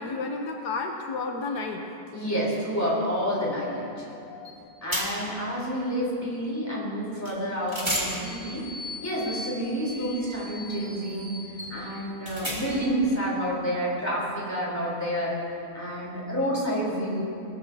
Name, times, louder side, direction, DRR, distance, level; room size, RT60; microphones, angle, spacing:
voice 1, 0.0-1.8 3.7-4.7, left 3 dB, 80° left, 3 dB, 1.4 m, -33 dB
voice 2, 2.1-4.2 4.8-8.7 9.0-11.3 11.7-15.3 15.7-17.2, equal, 10° left, -6 dB, 3.6 m, -29 dB
sound 1, 4.4-4.6 4.9-5.4 7.2-7.4 7.7-13.0, equal, 15° right, 1.9 m, -35 dB
19.5 x 13.5 x 2.8 m, 2.6 s
omnidirectional pair, 1.7 m